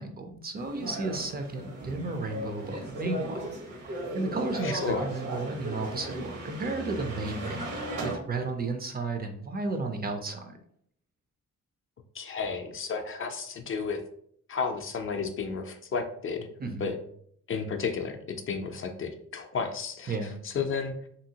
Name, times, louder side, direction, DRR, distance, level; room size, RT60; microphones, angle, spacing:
voice 1, 0.0-3.4 3.7-10.6 16.6-16.9 20.1-20.4, right 3 dB, 30° right, 5 dB, 0.4 m, -33 dB
sound 1, 0.5-8.2, right 1 dB, 80° right, 1.1 m, -37 dB
voice 2, 4.6-5.1 12.1-14.0 14.5-16.5 16.8-17.0 17.5-20.9, left 5 dB, 45° left, 6 dB, 0.4 m, -32 dB
2.8 x 2.8 x 2.7 m, 0.66 s
cardioid pair, 105°, 31 cm